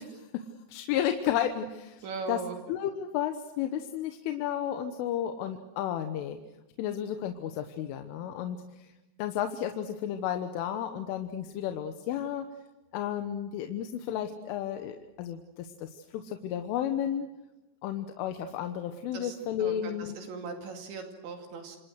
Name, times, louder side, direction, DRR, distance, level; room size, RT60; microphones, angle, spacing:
voice 1, 0.0-2.4 2.7-6.4 6.8-8.9 9.2-12.5 12.9-17.3 17.8-20.2, left 10 dB, 80° left, 7 dB, 3.6 m, -33 dB
voice 2, 2.0-2.6 19.1-21.8, right 4 dB, 70° right, 4 dB, 4.6 m, -39 dB
28.0 x 27.0 x 6.5 m, 1.0 s
omnidirectional pair, 5.7 m